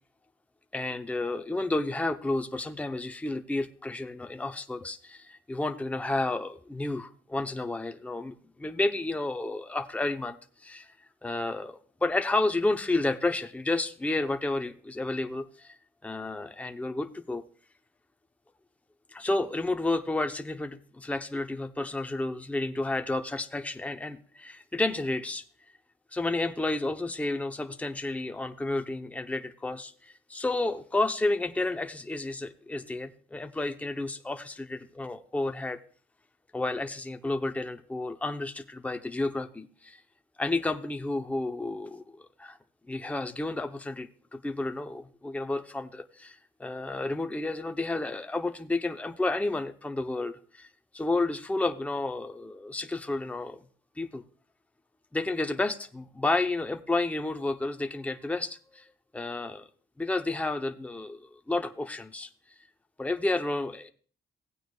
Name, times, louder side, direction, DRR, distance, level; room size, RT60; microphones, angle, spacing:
voice 1, 0.7-10.4 10.6-10.9 11.2-15.7 16.0-17.4 19.1-25.4 26.1-35.8 36.5-40.0 40.4-42.6 42.9-50.7 50.9-53.6 54.0-54.2 55.1-58.8 59.1-59.7 60.0-62.3 63.0-63.9, left 2 dB, 5° left, 7 dB, 0.7 m, -31 dB
16.5 x 9.1 x 2.3 m, 0.41 s
cardioid pair, 90°, 20 cm